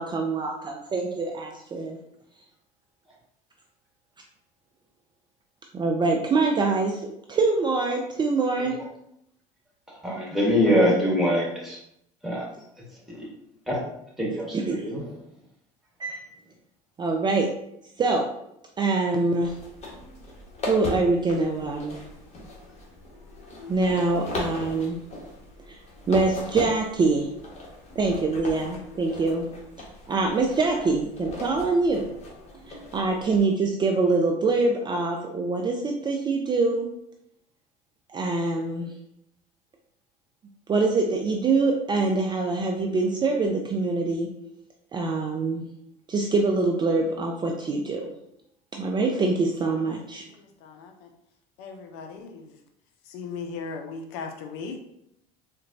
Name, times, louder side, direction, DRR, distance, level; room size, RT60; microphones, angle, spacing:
voice 1, 0.0-2.0 5.7-8.8 14.5-14.9 16.0-16.3 17.0-17.5 18.0-18.3 18.8-19.6 20.7-22.0 23.7-25.0 25.7-25.8 26.1-27.3 28.0-29.5 30.1-32.1 32.7-36.9 38.1-38.9 40.7-44.3 44.9-45.7 46.1-48.1 48.7-50.2, right 3 dB, 25° right, 1 dB, 0.4 m, -24 dB
voice 2, 10.0-11.8 12.2-12.5 13.1-13.3 13.7-13.8 14.2-15.0, equal, ahead, -4 dB, 1.4 m, -23 dB
sound 1, 19.4-33.4, left 2 dB, 40° left, 1.1 m, -38 dB
voice 3, 50.3-51.1 51.6-52.5 53.1-54.8, left 4 dB, 65° left, 4 dB, 0.5 m, -37 dB
3.8 x 2.2 x 2.6 m, 0.77 s
supercardioid pair, 85°, 18 cm